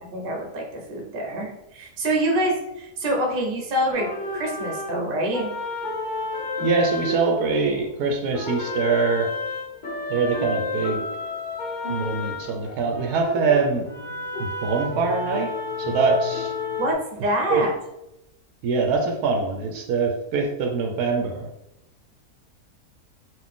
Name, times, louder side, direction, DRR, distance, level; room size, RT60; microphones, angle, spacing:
voice 1, 0.0-5.5 16.8-17.7, right 1 dB, 40° right, 0 dB, 0.9 m, -26 dB
sound 1, 3.9-8.0 8.3-16.9, left 3 dB, 55° left, 0.5 m, -31 dB
voice 2, 6.6-9.3 10.1-11.0 11.9-13.9 14.4-15.5 15.8-16.5 17.5-17.6 18.6-21.5, right 4 dB, 75° right, 3 dB, 1.1 m, -23 dB
4.1 x 2.5 x 3.7 m, 0.86 s
omnidirectional pair, 1.7 m